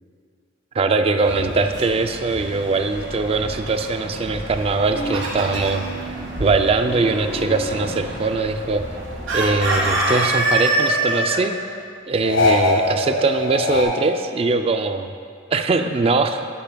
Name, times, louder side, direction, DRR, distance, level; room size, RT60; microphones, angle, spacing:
voice 1, 0.7-8.8 9.3-11.6 12.1-15.1 15.5-16.5, right 3 dB, 30° right, 7 dB, 0.4 m, -21 dB
sound 1, 1.2-10.0, equal, 65° right, 1.7 m, -34 dB
Chicken rooster, 4.7-5.9 9.3-11.4, right 2 dB, 80° right, 1.6 m, -21 dB
sound 2, 4.9-8.8 9.1-10.7 12.2-13.8, left 2 dB, 75° left, 1.3 m, -26 dB
9.9 x 9.0 x 2.3 m, 2.2 s
head